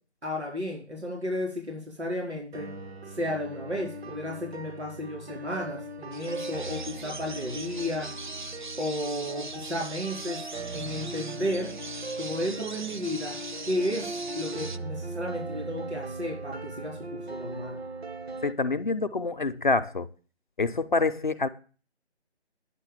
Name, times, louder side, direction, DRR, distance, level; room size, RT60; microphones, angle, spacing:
voice 1, 0.2-2.7 3.1-8.1 8.8-10.5 10.7-11.8 12.1-13.3 13.7-17.8, left 1 dB, 85° right, 4.5 m, -33 dB
sound 1, 2.5-18.5, right 2 dB, 65° right, 1.0 m, -39 dB
sound 2, 6.1-14.8, right 3 dB, 45° right, 0.5 m, -41 dB
voice 2, 18.4-20.1 20.6-21.5, left 3 dB, 50° left, 0.6 m, -26 dB
9.9 x 5.7 x 7.0 m
figure-of-eight pair, 160°, 33 cm